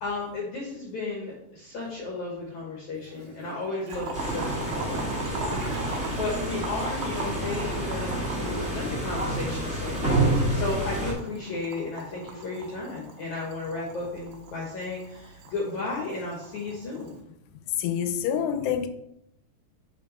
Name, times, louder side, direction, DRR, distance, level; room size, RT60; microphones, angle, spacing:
voice 1, 0.0-17.1, left 3 dB, 65° left, 2.0 m, -34 dB
Toilet flush, 3.0-6.5, right 3 dB, 50° right, 1.3 m, -44 dB
Boiling, 3.9-17.2, right 3 dB, 75° right, 2.2 m, -39 dB
sound 1, 4.1-11.1, right 1 dB, 5° right, 0.7 m, -29 dB
voice 2, 17.8-18.9, left 8 dB, 90° left, 2.8 m, -26 dB
7.4 x 3.4 x 5.4 m
omnidirectional pair, 4.7 m